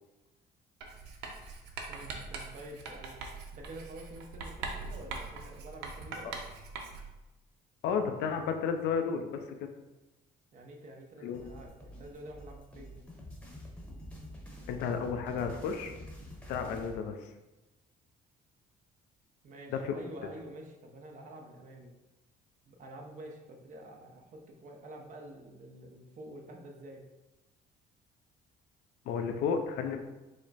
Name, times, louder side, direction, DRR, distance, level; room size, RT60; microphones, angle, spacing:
Writing, 0.8-7.2, right 4 dB, 90° right, 0.6 m, -42 dB
voice 1, 1.9-3.2 3.5-6.3 10.5-13.0 19.4-21.9 22.6-27.0, right 1 dB, 50° right, 1 dB, 0.8 m, -48 dB
voice 2, 7.8-9.4 11.2-11.5 14.7-15.9 16.5-17.3 19.7-20.0 29.1-30.0, left 6 dB, 85° left, 6 dB, 0.5 m, -32 dB
sound 1, 11.3-17.0, left 1 dB, 5° left, 0.9 m, -47 dB
4.9 x 2.1 x 4.1 m, 1.1 s
cardioid pair, 110°, 17 cm